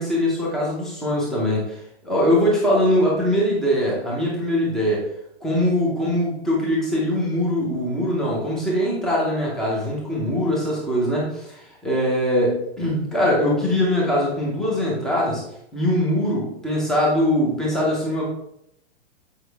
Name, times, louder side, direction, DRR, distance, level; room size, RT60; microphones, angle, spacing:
voice 1, 0.0-1.8 2.0-5.1 5.4-15.4 15.7-18.3, equal, ahead, -5 dB, 0.6 m, -22 dB
8.2 x 4.9 x 3.4 m, 0.77 s
hypercardioid pair, 180°, 32 cm